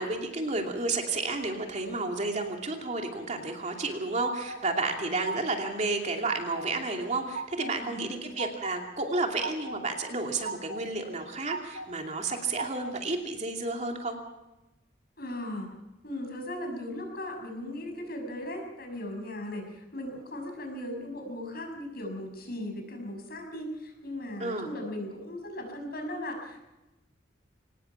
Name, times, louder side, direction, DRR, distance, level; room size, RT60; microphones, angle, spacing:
voice 1, 0.0-14.2 24.4-24.7, right 3 dB, 40° right, 2 dB, 2.7 m, -31 dB
sound 1, 3.6-4.6 5.0-5.7 6.0-6.7 7.0-7.7 8.1-8.8 9.1-9.8 10.2-10.8 11.2-11.9 12.3-13.0, right 4 dB, 75° right, 1.8 m, -39 dB
voice 2, 7.6-8.1 15.2-15.7 16.0-26.6, left 1 dB, 55° left, 4 dB, 6.2 m, -37 dB
24.0 x 19.5 x 5.8 m, 0.98 s
head